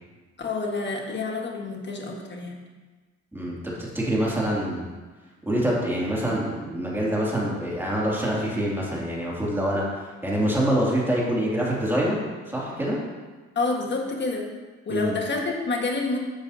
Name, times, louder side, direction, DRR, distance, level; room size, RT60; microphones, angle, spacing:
voice 1, 0.4-2.6 13.5-14.5 14.8-16.2, left 3 dB, 35° left, 1 dB, 1.6 m, -28 dB
voice 2, 3.3-4.9 5.5-12.2 12.5-13.0 14.9-15.2, right 1 dB, 5° right, -5 dB, 2.6 m, -25 dB
10.5 x 7.0 x 2.8 m, 1.3 s
cardioid pair, 90°, 30 cm